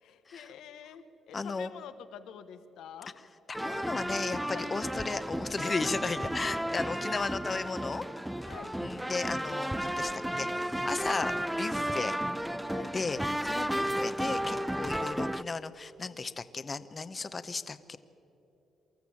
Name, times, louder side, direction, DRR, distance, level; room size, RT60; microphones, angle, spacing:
voice 1, 0.0-3.1 4.5-4.7 8.4-8.7 12.6-13.0, left 8 dB, 80° left, 10 dB, 1.2 m, -47 dB
voice 2, 1.3-1.7 3.5-8.0 8.8-12.2 12.9-18.0, left 4 dB, 30° left, 13 dB, 0.8 m, -35 dB
sound 1, 3.5-15.4, equal, 5° right, 0.5 m, -33 dB
24.0 x 14.0 x 8.7 m, 2.9 s
cardioid pair, 90°, 0 cm